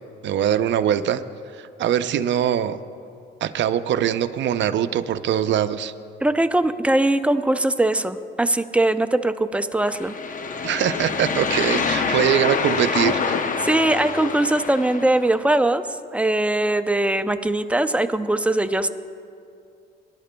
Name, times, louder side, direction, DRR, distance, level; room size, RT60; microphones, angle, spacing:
voice 1, 0.2-1.2 1.5-2.8 3.4-5.9 10.6-13.4, right 10 dB, 65° right, 11 dB, 0.5 m, -22 dB
voice 2, 6.2-10.1 13.6-15.8 16.1-18.9, right 1 dB, 5° right, 10 dB, 0.4 m, -21 dB
sound 1, 9.9-15.3, left 5 dB, 40° left, 0.7 m, -26 dB
22.5 x 11.0 x 2.2 m, 2.5 s
cardioid pair, 90°, 20 cm